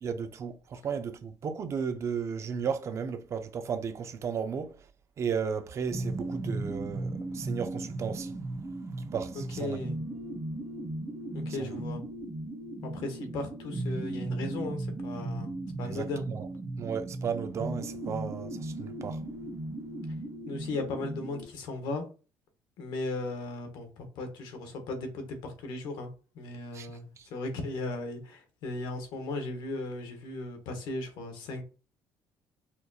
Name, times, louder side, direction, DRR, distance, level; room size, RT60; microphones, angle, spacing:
voice 1, 0.0-4.7 5.2-8.3 9.1-9.8 11.5-11.7 15.8-16.5 16.8-19.2 26.7-26.9, right 6 dB, 40° right, 0.4 m, -34 dB
sound 1, 5.9-21.4, right 2 dB, 5° right, 1.2 m, -37 dB
voice 2, 9.3-10.0 11.3-12.0 12.8-15.5 15.8-16.2 20.5-22.0 22.8-26.1 26.3-31.6, left 2 dB, 80° left, 1.0 m, -36 dB
4.3 x 2.6 x 2.3 m
cardioid pair, 130°, 7 cm